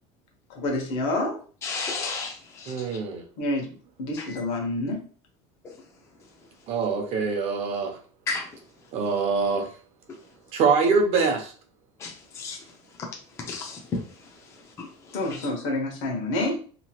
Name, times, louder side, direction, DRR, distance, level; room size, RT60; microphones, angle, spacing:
voice 1, 0.5-1.4 3.4-3.7 4.0-5.0 15.1-16.6, left 2 dB, 75° left, 1 dB, 1.1 m, -28 dB
voice 2, 1.6-2.7 8.3-8.5 12.0-12.6 13.5-14.0 14.8-14.9, left 4 dB, 20° left, 0 dB, 0.4 m, -32 dB
voice 3, 2.7-3.2 6.7-8.0 8.9-9.7 10.5-11.5, right 4 dB, 45° right, 3 dB, 0.7 m, -24 dB
2.9 x 2.5 x 2.8 m, 0.41 s
cardioid pair, 165°, 14 cm